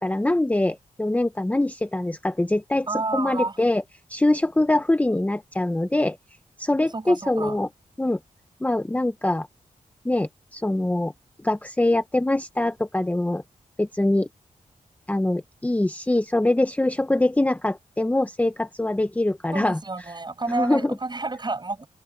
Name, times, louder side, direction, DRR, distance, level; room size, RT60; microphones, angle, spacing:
voice 1, 0.0-2.9 3.1-3.8 4.1-6.2 6.6-7.7 8.0-8.2 8.6-9.5 10.0-11.1 11.4-13.4 13.8-14.3 15.1-19.8 20.5-21.0, left 1 dB, 10° left, 0.8 m, -23 dB
voice 2, 2.9-3.6 6.9-7.6 19.5-21.9, right 3 dB, 30° right, 6.6 m, -30 dB
wide cardioid pair, 95°, 14 cm